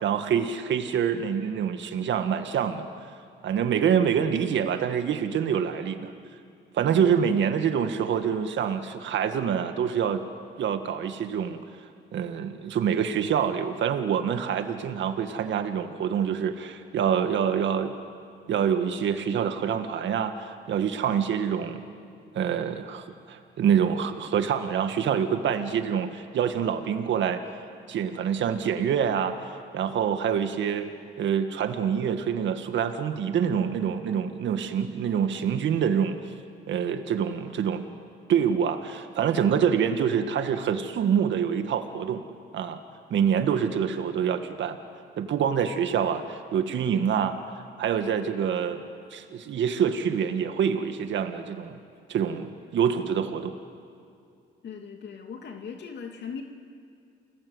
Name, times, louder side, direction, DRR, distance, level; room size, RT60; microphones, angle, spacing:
voice 1, 0.0-2.9 3.4-6.1 6.7-10.2 10.6-11.6 12.1-17.9 18.5-21.8 22.3-27.4 27.9-30.9 31.2-36.2 36.7-37.8 38.3-42.2 42.5-42.8 43.1-44.8 45.2-47.4 47.8-48.8 49.1-51.8 52.1-53.6, right 8 dB, 70° right, 7 dB, 1.8 m, -26 dB
voice 2, 54.6-56.4, left 6 dB, 60° left, 3 dB, 2.6 m, -39 dB
30.0 x 20.5 x 8.0 m, 2.5 s
cardioid pair, 90°, 20 cm